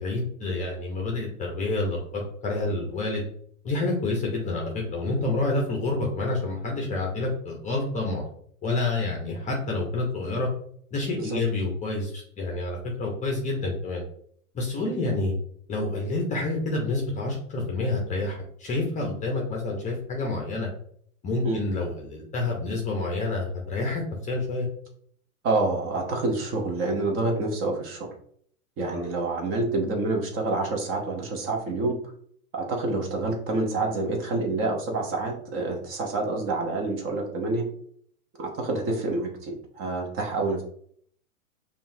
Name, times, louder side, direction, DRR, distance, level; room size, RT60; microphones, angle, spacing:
voice 1, 0.0-3.2 3.6-8.2 8.6-10.5 10.9-14.0 14.5-15.3 15.7-20.7 21.2-24.0 24.3-24.7 28.9-29.0, left 2 dB, 15° left, 0 dB, 0.7 m, -28 dB
voice 2, 25.4-28.1 28.8-31.9 32.5-37.6 38.4-40.6, right 2 dB, 30° right, 1 dB, 0.9 m, -27 dB
5.4 x 2.5 x 2.6 m, 0.62 s
hypercardioid pair, 125°, 43 cm